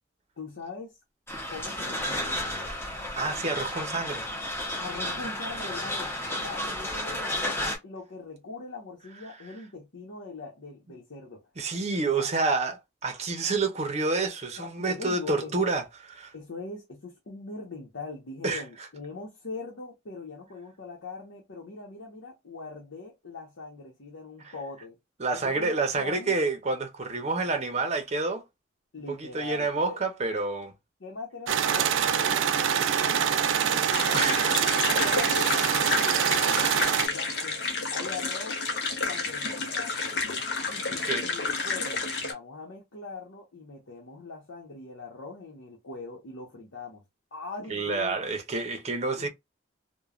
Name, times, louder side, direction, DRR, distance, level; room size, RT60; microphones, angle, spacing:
voice 1, 0.4-0.9 1.5-2.7 4.8-6.1 6.4-11.4 12.1-12.3 14.6-15.7 16.3-25.0 25.3-26.3 28.9-30.0 31.0-36.6 37.1-37.7 37.9-38.6 39.1-39.9 40.7-47.0 47.3-48.2 49.2-49.3, left 3 dB, 85° left, 0.8 m, -41 dB
sound 1, 1.3-7.8, left 1 dB, 10° left, 0.7 m, -32 dB
voice 2, 3.2-4.2 11.6-15.8 16.2-16.3 18.4-18.6 25.2-28.4 29.1-30.7 34.1-34.5 40.4-40.6 41.0-41.2 47.7-49.3, right 3 dB, 35° right, 0.6 m, -28 dB
sound 2, 31.5-37.1, right 8 dB, 75° right, 0.4 m, -25 dB
sound 3, 33.9-42.3, left 4 dB, 60° left, 0.8 m, -30 dB
3.0 x 2.2 x 2.4 m
head